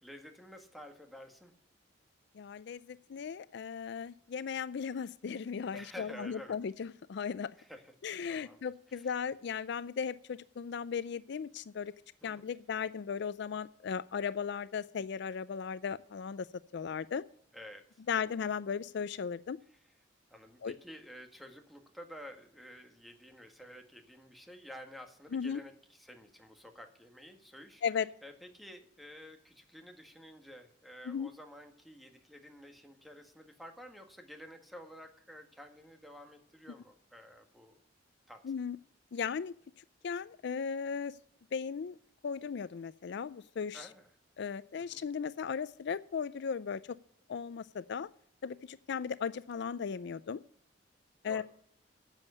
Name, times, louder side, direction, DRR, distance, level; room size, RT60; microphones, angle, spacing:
voice 1, 0.0-1.5 5.7-6.6 7.6-7.9 8.2-9.2 12.2-12.4 17.5-18.0 19.7-19.8 20.3-27.8 28.2-37.8 38.3-38.4 43.7-44.1 44.8-45.1 51.3-51.4, equal, ahead, 5 dB, 1.6 m, -51 dB
voice 2, 2.3-7.5 8.0-11.9 12.2-16.5 16.7-17.2 18.1-19.6 20.6-20.7 25.3-25.6 27.8-28.1 31.0-31.3 38.4-38.8 39.1-41.2 41.5-42.0 42.2-43.9 44.4-47.0 47.3-48.1 48.4-50.4 51.2-51.4, left 6 dB, 65° left, 17 dB, 0.4 m, -36 dB
10.5 x 7.4 x 8.0 m, 0.63 s
head